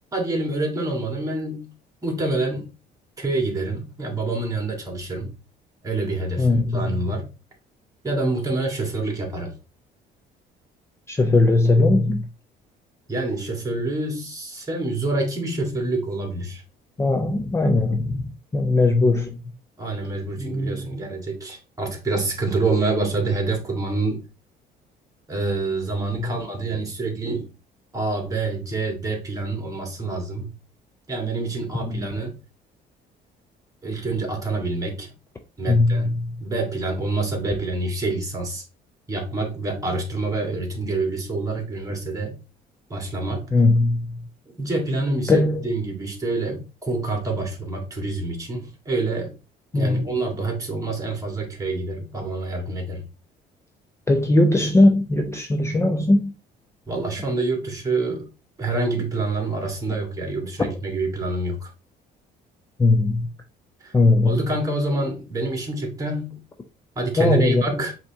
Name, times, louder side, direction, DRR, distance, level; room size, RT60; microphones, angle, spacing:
voice 1, 0.1-1.7 2.0-2.7 3.2-5.3 5.8-7.3 8.0-9.5 13.1-16.6 19.8-24.2 25.3-27.5 27.9-30.5 31.1-32.4 33.8-35.1 35.6-36.1 36.4-38.6 39.1-42.4 42.9-43.5 44.6-49.4 49.7-53.0 56.9-58.3 58.6-61.7 63.8-63.9 64.3-66.4 67.0-67.9, right 2 dB, 20° right, 1.9 m, -27 dB
voice 2, 6.4-6.8 11.1-12.2 17.0-18.2 18.5-19.4 31.9-32.0 35.7-36.0 43.5-44.0 45.3-45.7 49.7-50.1 54.1-56.3 62.8-63.3 63.9-64.4 67.2-67.6, left 2 dB, 15° left, 0.5 m, -18 dB
5.2 x 2.9 x 3.4 m
cardioid pair, 110°, 17 cm